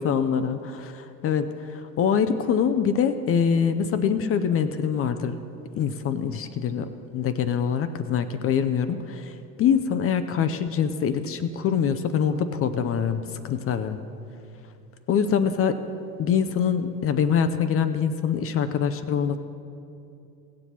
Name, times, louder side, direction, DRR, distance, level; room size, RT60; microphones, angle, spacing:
voice 1, 0.0-5.4 5.7-14.0 15.1-15.8 16.2-19.4, left 7 dB, 30° left, 10 dB, 0.6 m, -24 dB
17.5 x 7.4 x 4.3 m, 2.6 s
figure-of-eight pair, 65°, 50 cm